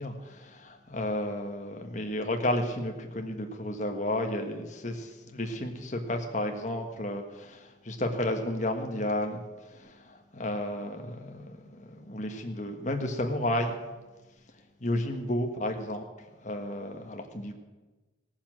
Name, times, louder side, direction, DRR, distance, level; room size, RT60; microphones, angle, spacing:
voice 1, 0.0-9.4 9.7-13.8 14.8-16.0 16.4-17.5, left 1 dB, 40° left, 4 dB, 1.5 m, -32 dB
17.0 x 7.2 x 7.5 m, 1.2 s
head